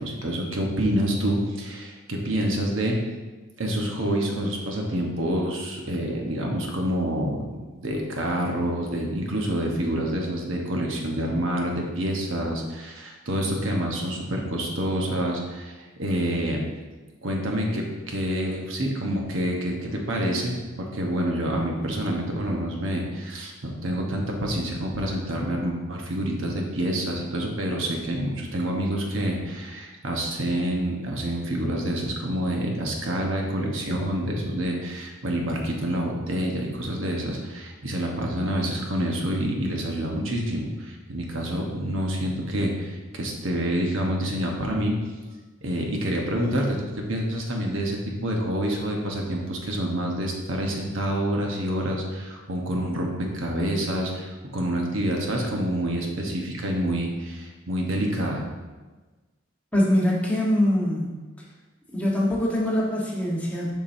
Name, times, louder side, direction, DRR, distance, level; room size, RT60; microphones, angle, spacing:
voice 1, 0.0-3.0 3.6-7.5 7.8-16.6 17.2-45.0 45.6-58.5, right 1 dB, 70° right, 0 dB, 1.0 m, -27 dB
voice 2, 59.7-61.2 61.9-63.8, left 1 dB, 5° left, -5 dB, 1.2 m, -23 dB
7.1 x 6.0 x 2.7 m, 1.2 s
head